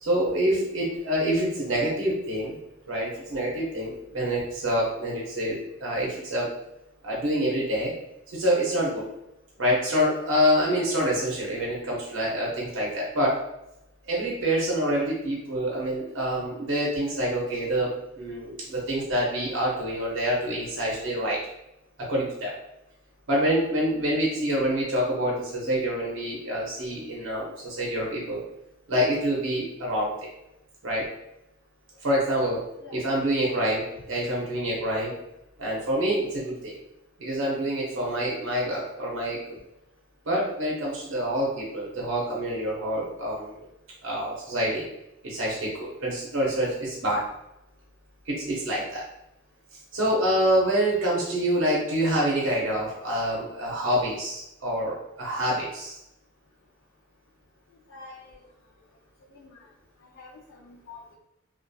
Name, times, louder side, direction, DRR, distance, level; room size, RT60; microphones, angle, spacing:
voice 1, 0.0-2.6 2.9-6.5 7.0-7.9 8.3-9.1 9.6-13.3 14.0-17.9 18.2-21.4 22.0-22.5 23.3-28.4 28.9-30.1 30.8-31.0 32.0-32.6 32.9-35.1 35.6-36.8 37.2-39.4 40.3-43.7 44.0-44.9 45.2-47.2 48.3-49.0 49.9-56.0, equal, 65° right, -4 dB, 0.6 m, -26 dB
voice 2, 57.9-58.4 59.3-59.7 60.0-61.1, left 3 dB, 65° left, -3 dB, 0.4 m, -47 dB
2.6 x 2.2 x 2.2 m, 0.88 s
head